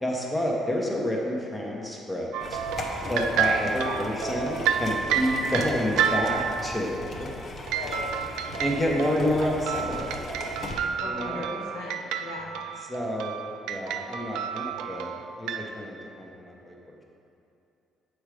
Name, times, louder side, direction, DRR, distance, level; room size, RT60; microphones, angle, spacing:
voice 1, 0.0-2.6 3.1-7.3 8.6-10.3 11.0-11.7 12.8-13.3 13.7-17.0, equal, 10° left, -1 dB, 1.1 m, -29 dB
sound 1, 2.3-6.7 7.7-15.7, right 7 dB, 85° right, 0.4 m, -30 dB
sound 2, 2.4-10.8, left 2 dB, 45° left, 0.9 m, -37 dB
voice 2, 3.4-4.3 7.7-8.1 11.0-12.6, left 3 dB, 85° left, -2 dB, 1.1 m, -36 dB
7.2 x 4.8 x 5.0 m, 2.8 s
cardioid pair, 90°, 0 cm